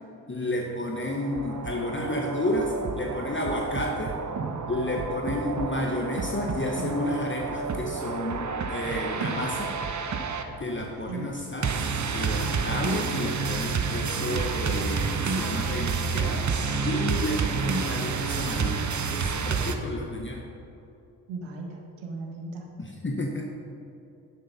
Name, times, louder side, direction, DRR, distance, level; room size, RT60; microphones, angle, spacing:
voice 1, 0.3-4.2 4.7-9.8 10.6-11.8 12.1-16.5 16.8-18.8 19.1-20.4 22.8-23.5, left 1 dB, 25° left, 1 dB, 1.4 m, -31 dB
sound 1, 1.0-19.8, right 5 dB, 40° right, 1.0 m, -29 dB
voice 2, 21.3-22.7, right 3 dB, 75° right, 1 dB, 1.7 m, -37 dB
10.5 x 7.5 x 5.4 m, 2.7 s
hypercardioid pair, 40°, 47 cm